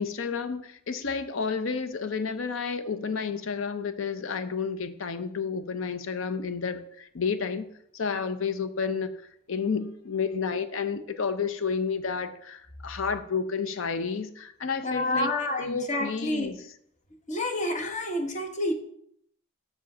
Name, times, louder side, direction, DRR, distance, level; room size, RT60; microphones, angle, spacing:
voice 1, 0.0-7.7 7.9-9.1 9.5-15.3 15.6-16.6, left 5 dB, 70° left, 0.6 m, -31 dB
voice 2, 14.8-16.5 17.3-18.7, left 1 dB, 35° left, 1.1 m, -29 dB
6.4 x 4.8 x 6.0 m
head